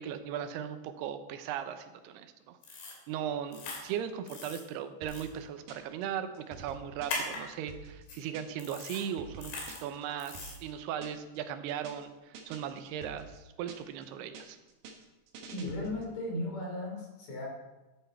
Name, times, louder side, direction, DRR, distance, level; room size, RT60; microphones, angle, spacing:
voice 1, 0.0-9.5 9.8-14.6, right 9 dB, 85° right, 9 dB, 2.9 m, -38 dB
sound 1, 2.6-3.0 3.5-3.8 4.3-4.6 5.1-5.2 7.1-7.4 8.1-8.2 8.6-9.0 9.4-9.8 10.2-10.6, left 3 dB, 75° left, 4.7 m, -39 dB
sound 2, 5.0-6.0 6.3-8.7 9.0-11.4 11.7-12.0 12.3-14.0 14.3-16.1, right 5 dB, 65° right, 2.7 m, -49 dB
voice 2, 15.5-17.5, left 1 dB, 45° left, -1 dB, 4.2 m, -36 dB
14.0 x 10.0 x 4.4 m, 1.1 s
omnidirectional pair, 4.6 m